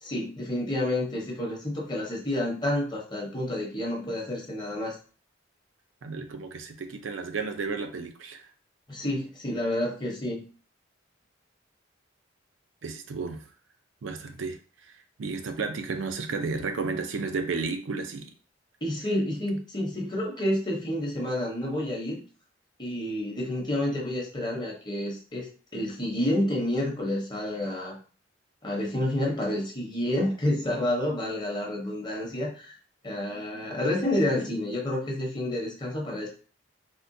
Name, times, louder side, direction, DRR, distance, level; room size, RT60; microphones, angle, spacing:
voice 1, 0.0-5.0 8.9-10.4 18.8-22.2 22.8-28.0 28.6-32.7 33.0-36.3, left 1 dB, 20° left, -2 dB, 0.8 m, -29 dB
voice 2, 6.0-8.4 12.8-13.4 14.0-14.6 15.2-18.3, right 4 dB, 80° right, 6 dB, 0.5 m, -32 dB
3.6 x 2.1 x 2.6 m, 0.39 s
head